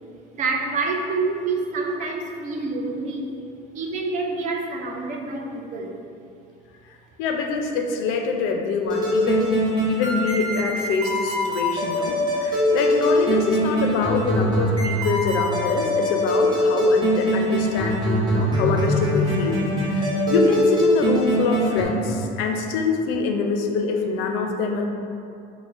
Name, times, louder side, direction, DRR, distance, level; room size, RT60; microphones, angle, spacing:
voice 1, 0.3-3.4 3.7-6.0, right 3 dB, 40° right, 1 dB, 0.4 m, -27 dB
voice 2, 7.2-9.5 9.9-19.6 19.9-24.9, left 4 dB, 75° left, 3 dB, 0.4 m, -25 dB
sound 1, 8.9-21.8, left 1 dB, 20° right, 0.8 m, -22 dB
5.8 x 2.1 x 2.4 m, 2.5 s
cardioid pair, 150°, 21 cm